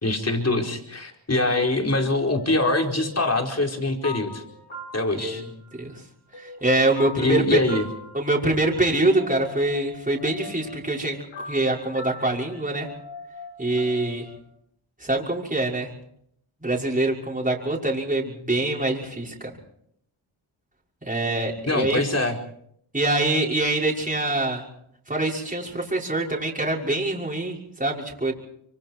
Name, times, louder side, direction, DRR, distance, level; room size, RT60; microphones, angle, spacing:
voice 1, 0.0-4.4 4.9-5.4 7.2-7.8 21.7-22.4, left 2 dB, 30° left, 2 dB, 4.7 m, -23 dB
sound 1, 2.1-6.0 6.3-14.4, left 3 dB, 70° left, 5.5 m, -42 dB
voice 2, 6.4-7.8 8.1-12.9 13.6-14.3 15.0-15.9 16.6-19.6 21.0-22.0 22.9-24.6 25.1-28.3, right 2 dB, 15° right, -2 dB, 5.9 m, -24 dB
26.0 x 24.5 x 4.7 m, 0.70 s
cardioid pair, 55°, 49 cm